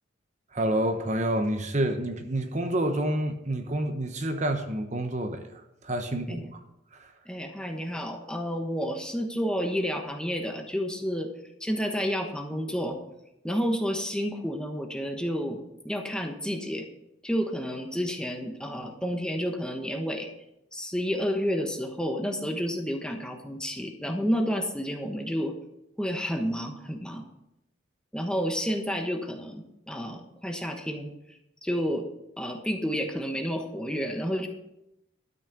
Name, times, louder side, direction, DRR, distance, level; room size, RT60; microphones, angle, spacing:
voice 1, 0.5-5.4 5.8-6.6 6.9-7.1, right 1 dB, 35° right, 1.0 m, -28 dB
voice 2, 7.3-11.3 11.6-13.0 13.4-16.9 17.2-20.3 20.7-25.5 26.0-27.2 28.1-31.1 31.6-32.0 32.4-34.5, equal, 5° left, 1.1 m, -30 dB
12.5 x 6.4 x 6.7 m
head